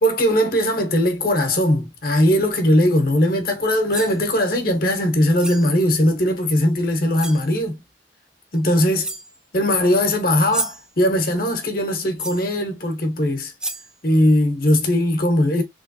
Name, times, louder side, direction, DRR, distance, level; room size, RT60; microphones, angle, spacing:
voice 1, 0.0-7.8 8.5-9.1 9.5-13.5 14.0-15.6, left 1 dB, 55° left, 1.2 m, -19 dB
sound 1, 3.7-4.2 5.4-5.7 6.7-6.8 7.1-7.5 8.5-8.6 9.0-9.4 10.3-10.9 12.2-12.5 13.2-13.3 13.6-14.0, right 2 dB, 5° right, 0.4 m, -31 dB
3.3 x 3.1 x 2.7 m
head